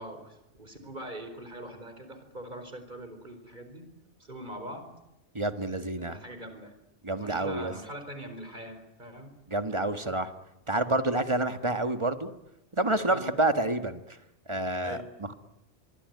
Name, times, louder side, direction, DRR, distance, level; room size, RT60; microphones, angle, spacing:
voice 1, 0.0-3.8 4.2-4.9 5.9-6.8 7.2-9.3 13.1-13.3 14.8-15.1, right 1 dB, 40° right, 8 dB, 4.8 m, -42 dB
voice 2, 5.3-6.2 7.0-7.7 9.5-10.3 10.7-12.3 12.7-14.0 14.5-15.3, right 2 dB, 25° right, 8 dB, 1.8 m, -28 dB
25.0 x 23.0 x 9.6 m, 0.89 s
omnidirectional pair, 1.2 m